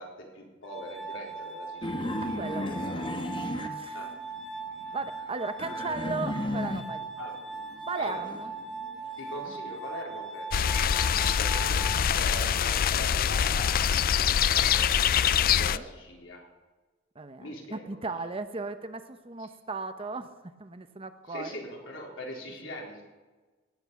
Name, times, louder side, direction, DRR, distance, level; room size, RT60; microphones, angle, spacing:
voice 1, 0.0-2.2 2.5-3.2 3.9-4.1 7.2-7.3 8.0-8.2 9.2-10.7 11.4-11.8 12.1-13.8 14.2-14.9 15.5-16.4 17.4-17.9 21.3-23.0, left 1 dB, 75° left, -1 dB, 3.9 m, -41 dB
Glass, 0.6-12.7, right 4 dB, 5° left, 1.3 m, -40 dB
sound 1, 1.8-4.5 4.8-7.1 7.5-9.6, left 1 dB, 25° left, 1.2 m, -35 dB
voice 2, 2.2-3.0 3.6-4.1 4.9-7.1 7.9-8.5 15.5-15.9 17.2-21.5, right 3 dB, 30° right, 10 dB, 0.8 m, -36 dB
sound 2, 10.5-15.8, left 8 dB, 45° left, 0.4 m, -24 dB
17.5 x 8.7 x 6.9 m, 1.2 s
head